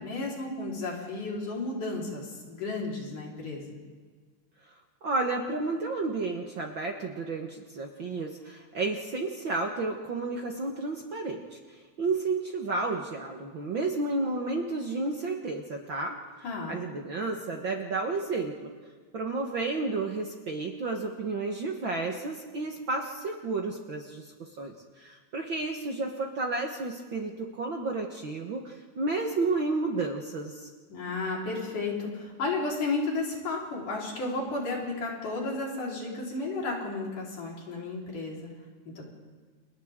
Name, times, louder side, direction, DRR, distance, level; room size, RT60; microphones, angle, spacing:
voice 1, 0.0-3.8 16.4-16.8 30.9-38.5 39.0-39.1, left 3 dB, 75° left, -3 dB, 5.7 m, -33 dB
voice 2, 5.0-16.2 16.7-18.7 19.1-30.7, right 3 dB, 50° right, 1 dB, 1.6 m, -32 dB
30.0 x 29.5 x 3.7 m, 1.5 s
omnidirectional pair, 3.6 m